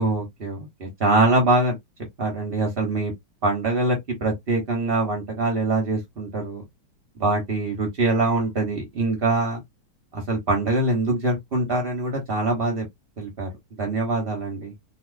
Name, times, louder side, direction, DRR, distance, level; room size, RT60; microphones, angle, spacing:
voice 1, 0.0-1.8 2.2-3.1 3.4-6.6 7.2-9.6 10.1-12.8 13.2-13.5 13.8-14.7, right 2 dB, 40° right, 0.9 m, -23 dB
4.2 x 2.8 x 2.5 m
omnidirectional pair, 2.3 m